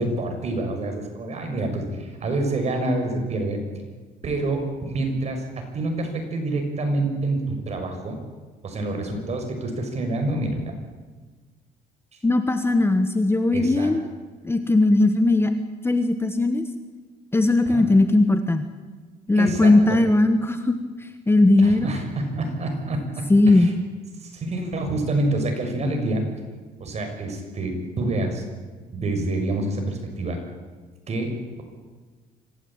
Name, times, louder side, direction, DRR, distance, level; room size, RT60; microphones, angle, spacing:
voice 1, 0.0-3.6 4.2-5.4 5.7-8.2 8.6-10.5 13.5-13.9 17.7-17.9 19.3-20.0 21.6-23.7 24.2-26.3 26.8-28.4 28.9-30.4 31.1-31.6, right 2 dB, 40° right, 4 dB, 6.4 m, -27 dB
voice 2, 12.2-14.1 14.4-15.5 15.8-16.6 17.3-18.6 19.3-20.7 21.3-21.9 23.3-23.7, left 2 dB, 15° left, 8 dB, 1.5 m, -18 dB
26.0 x 16.0 x 9.0 m, 1.4 s
cardioid pair, 110°, 17 cm